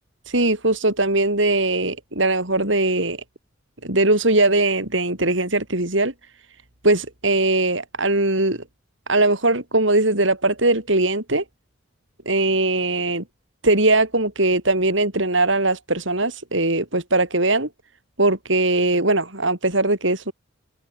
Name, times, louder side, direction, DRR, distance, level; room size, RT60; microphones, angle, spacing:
voice 1, 0.3-3.2 3.8-6.1 6.8-8.6 9.1-11.4 12.2-13.2 13.6-17.7 18.2-20.3, right 2 dB, 65° right, 6.3 m, -20 dB
open air
head